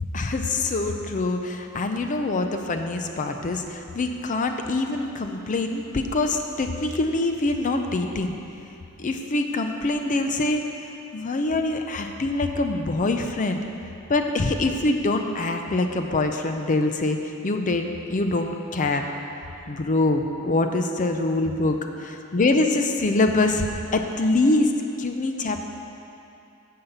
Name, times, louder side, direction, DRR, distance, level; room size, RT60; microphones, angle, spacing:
voice 1, 0.1-8.4 9.0-13.7 14.1-19.0 19.7-24.7 25.0-25.6, left 2 dB, 35° left, 5 dB, 0.5 m, -24 dB
9.6 x 5.6 x 7.9 m, 2.7 s
head